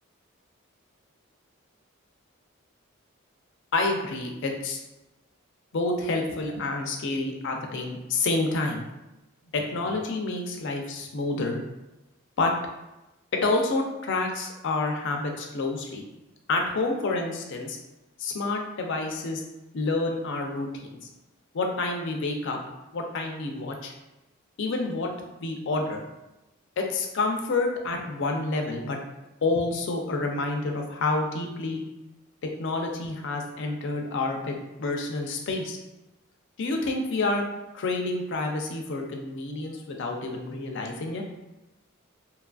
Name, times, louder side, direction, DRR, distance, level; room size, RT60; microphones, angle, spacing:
voice 1, 3.7-4.8 5.7-8.8 9.5-11.6 12.4-12.5 13.3-16.1 16.5-17.8 18.2-19.4 19.7-21.0 21.5-22.6 22.9-23.9 24.6-25.1 25.4-26.0 26.8-29.0 29.4-31.8 32.6-35.8 36.6-37.4 37.7-41.2, left 3 dB, 60° left, 2 dB, 0.4 m, -28 dB
2.8 x 2.4 x 2.3 m, 1.0 s
head